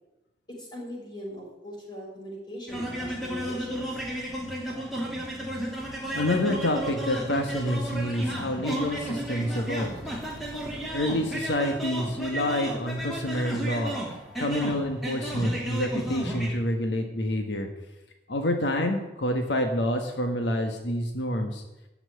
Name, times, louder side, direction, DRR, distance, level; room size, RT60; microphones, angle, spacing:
voice 1, 0.5-4.0, equal, 25° left, -2 dB, 5.8 m, -40 dB
sound 1, 2.7-16.6, right 1 dB, ahead, 3.1 m, -33 dB
voice 2, 5.8-10.0 10.9-13.9 14.4-17.7 18.3-21.6, left 1 dB, 90° left, 4 dB, 1.6 m, -28 dB
14.5 x 6.0 x 9.9 m, 0.96 s
head